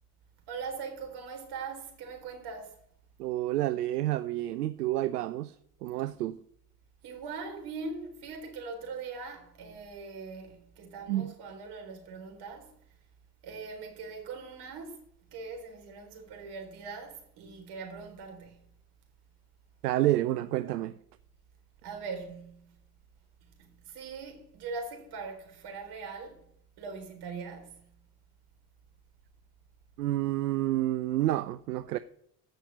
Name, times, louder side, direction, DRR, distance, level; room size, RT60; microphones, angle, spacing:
voice 1, 0.5-2.8 7.0-13.0 13.4-15.0 15.3-18.6 21.8-22.7 23.4-26.5 26.8-27.9, right 4 dB, 55° right, 4.0 m, -41 dB
voice 2, 3.2-5.6 5.8-6.4 11.1-11.3 19.8-20.9 30.0-32.0, right 15 dB, 85° right, 0.6 m, -29 dB
15.5 x 5.9 x 6.5 m
hypercardioid pair, 65°, 46 cm